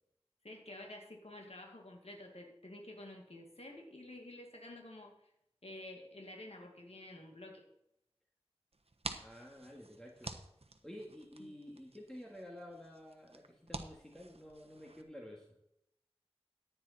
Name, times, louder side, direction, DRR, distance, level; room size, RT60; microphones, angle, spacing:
voice 1, 0.4-5.2 5.6-7.6 11.4-11.5, left 1 dB, 80° left, 1 dB, 2.0 m, -50 dB
sound 1, 8.7-15.0, right 2 dB, 75° right, 1.1 m, -49 dB
voice 2, 9.2-10.3 10.8-15.5, equal, 5° left, -1 dB, 2.1 m, -51 dB
14.5 x 9.5 x 4.2 m, 0.77 s
wide cardioid pair, 40°, 10 cm